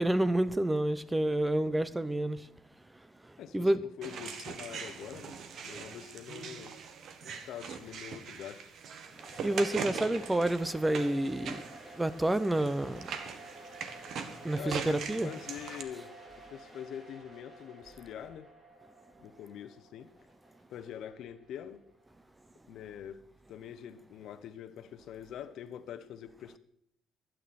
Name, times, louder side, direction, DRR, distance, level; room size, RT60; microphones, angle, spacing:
voice 1, 0.0-2.4 3.5-3.8 9.4-11.6 12.0-13.1 14.4-15.3, right 1 dB, 10° right, 0.8 m, -29 dB
voice 2, 3.4-6.8 7.4-8.6 14.5-16.1 16.5-18.5 19.2-20.1 20.7-21.8 22.7-23.2 23.5-26.6, left 9 dB, 75° left, 1.0 m, -44 dB
sound 1, 4.0-15.8, right 6 dB, 65° right, 1.5 m, -42 dB
sound 2, 9.2-22.0, right 1 dB, 30° right, 7.8 m, -52 dB
23.5 x 9.3 x 4.3 m
cardioid pair, 100°, 0 cm